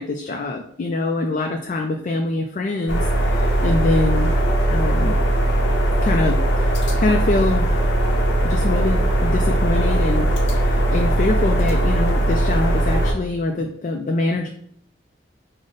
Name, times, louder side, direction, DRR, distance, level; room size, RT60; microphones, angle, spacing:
voice 1, 0.0-4.3 4.7-5.2 6.0-7.9 8.4-10.3 10.5-14.5, left 2 dB, 40° left, 3 dB, 0.3 m, -24 dB
sound 1, 2.9-13.1, right 1 dB, 85° left, 0.8 m, -19 dB
5.0 x 2.1 x 3.8 m, 0.66 s
head